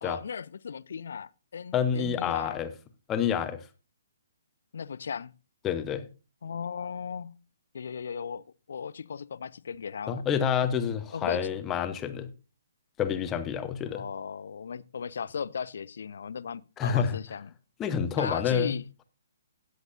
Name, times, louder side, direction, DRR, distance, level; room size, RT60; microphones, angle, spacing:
voice 1, 0.0-2.6 4.7-5.3 6.4-7.4 7.7-10.2 11.1-11.5 13.9-17.5 18.2-18.8, left 6 dB, 55° left, 0.5 m, -36 dB
voice 2, 1.7-2.7 3.1-3.6 5.6-6.0 10.1-12.3 13.0-14.0 16.8-17.2 17.8-18.8, left 8 dB, 15° left, 1.1 m, -28 dB
18.0 x 8.0 x 2.6 m
figure-of-eight pair, 130°, 0 cm